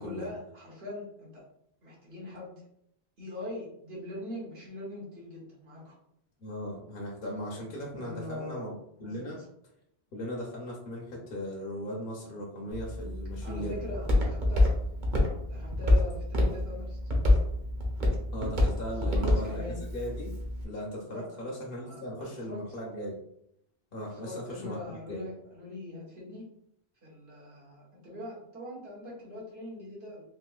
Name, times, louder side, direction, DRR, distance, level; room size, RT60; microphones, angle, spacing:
voice 1, 0.0-1.4 1.8-2.6 3.2-5.9 8.0-8.7 9.0-9.5 13.4-14.8 15.5-17.0 18.9-19.8 21.1-21.3 21.8-22.8 24.1-26.4 27.0-30.2, left 2 dB, 70° right, -5 dB, 1.5 m, -42 dB
voice 2, 6.4-9.4 10.1-13.9 18.3-20.3 20.6-23.2 23.9-24.8 25.1-25.2, equal, 65° left, -3 dB, 0.9 m, -38 dB
Walk footsteps, 12.7-20.6, left 1 dB, 50° right, 0.9 m, -27 dB
3.6 x 2.7 x 2.3 m, 0.75 s
omnidirectional pair, 1.1 m